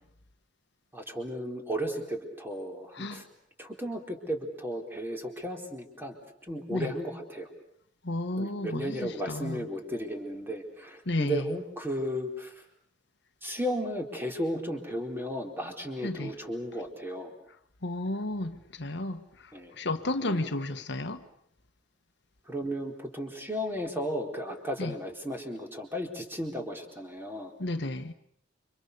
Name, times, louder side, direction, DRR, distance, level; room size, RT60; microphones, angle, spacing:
voice 1, 0.9-3.2 3.6-6.2 6.4-7.5 8.4-12.5 13.4-17.3 19.5-19.7 20.2-20.5 22.5-27.5, equal, 10° right, 4.2 m, -34 dB
voice 2, 2.9-3.2 6.7-6.9 8.0-9.7 11.0-11.6 16.0-16.3 17.8-21.2 24.8-24.9 27.6-28.1, left 2 dB, 65° left, 1.3 m, -33 dB
29.5 x 26.0 x 6.8 m
head